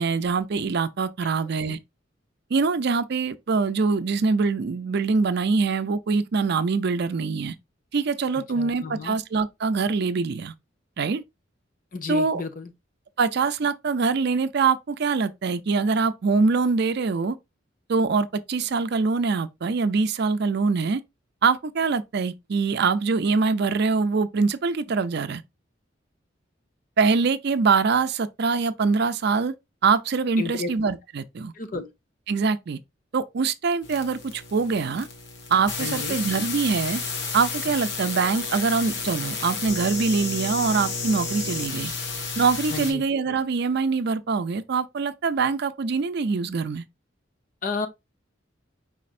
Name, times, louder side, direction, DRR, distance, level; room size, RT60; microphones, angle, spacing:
voice 1, 0.0-1.8 2.5-7.5 7.9-10.5 11.0-11.2 12.1-12.4 13.2-17.4 17.9-21.0 21.4-25.4 27.0-29.6 29.8-31.5 32.3-32.8 33.1-35.1 35.5-37.0 37.3-41.9 42.4-46.8, right 4 dB, 60° right, 0.5 m, -24 dB
voice 2, 8.6-9.2 11.9-12.7 30.4-30.7 31.5-31.9 35.8-36.2 42.7-43.0 47.6-47.9, left 4 dB, 45° left, 0.7 m, -32 dB
sound 1, 33.8-42.9, left 4 dB, 65° left, 1.2 m, -32 dB
4.9 x 4.2 x 2.5 m
head